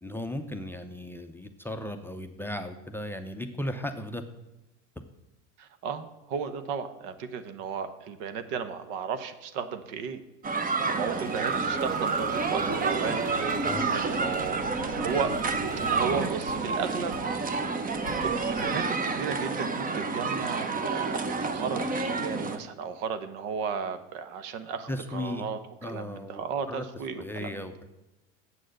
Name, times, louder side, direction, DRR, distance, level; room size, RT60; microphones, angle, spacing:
voice 1, 0.0-4.2 13.6-13.9 24.9-25.4 25.8-26.8 27.2-27.8, left 1 dB, 5° left, 8 dB, 0.6 m, -36 dB
voice 2, 5.6-10.2 10.9-13.2 13.9-14.6 14.9-15.4 15.9-17.1 17.4-17.7 18.2-27.7, right 6 dB, 65° right, 10 dB, 1.1 m, -34 dB
sound 1, 10.4-22.6, right 4 dB, 20° right, 0.9 m, -29 dB
Squeak, 10.7-16.8 17.1-17.4 17.9-18.6, equal, 80° right, 4.2 m, -43 dB
7.7 x 6.3 x 7.7 m, 1.0 s
supercardioid pair, 100°, 37 cm